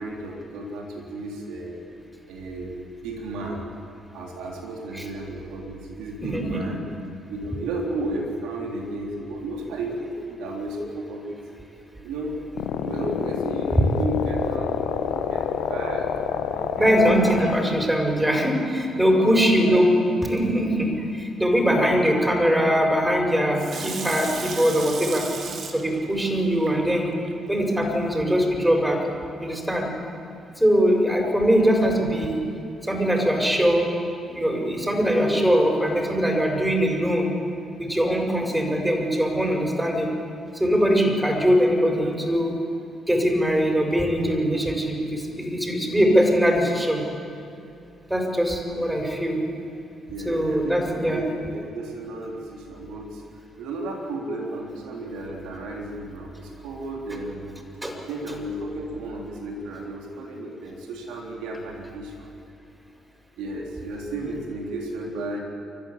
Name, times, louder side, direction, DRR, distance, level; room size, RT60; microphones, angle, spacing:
voice 1, 0.0-1.8 2.3-3.6 4.1-6.8 7.3-11.4 12.0-12.4 12.7-17.4 18.9-19.8 21.6-22.0 42.0-42.1 50.1-57.5 58.0-62.3 63.4-65.4, right 2 dB, 65° right, 0 dB, 3.6 m, -33 dB
voice 2, 6.2-6.6 13.8-13.9 16.8-19.9 20.2-25.2 25.7-27.1 27.5-29.0 29.4-29.9 30.6-32.4 32.8-33.9 34.3-37.3 37.8-40.1 40.5-42.5 43.1-47.0 48.1-49.4 50.2-51.2 57.8-57.9, equal, 10° right, 1 dB, 6.8 m, -21 dB
sound 1, 12.5-17.6, left 9 dB, 65° left, 1.1 m, -28 dB
Water tap faucet / Sink (filling or washing), 23.5-27.3 27.8-27.9, right 5 dB, 50° right, 2.3 m, -36 dB
29.0 x 15.0 x 8.6 m, 2.5 s
figure-of-eight pair, 40°, 0 cm